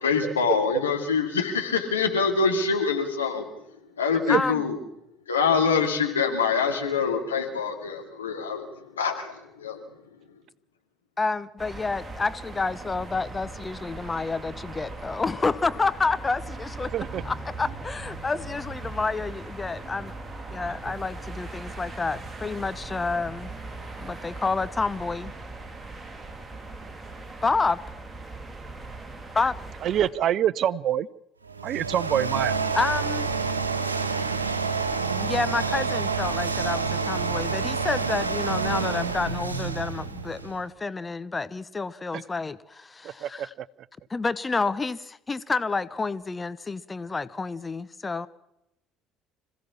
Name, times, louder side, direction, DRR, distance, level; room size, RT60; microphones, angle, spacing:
voice 1, 0.0-3.5 4.0-4.8 5.3-9.8, left 5 dB, 80° left, 4 dB, 2.6 m, -25 dB
voice 2, 4.3-4.6 11.2-16.9 17.2-20.1 20.5-23.5 24.0-25.3 27.4-27.8 29.3-29.5 32.7-33.3 35.1-43.5 44.1-48.3, left 4 dB, 20° left, 16 dB, 0.9 m, -29 dB
sound 1, 11.6-30.1, right 2 dB, 15° right, 4.0 m, -39 dB
voice 3, 16.9-17.2 20.9-21.0 29.8-31.1 31.6-32.6 42.1-42.2 43.0-43.7, right 10 dB, 50° right, 21 dB, 0.7 m, -26 dB
sound 2, 31.5-40.6, right 4 dB, 85° right, 1.4 m, -28 dB
26.0 x 16.0 x 7.3 m, 0.86 s
figure-of-eight pair, 60°, 0 cm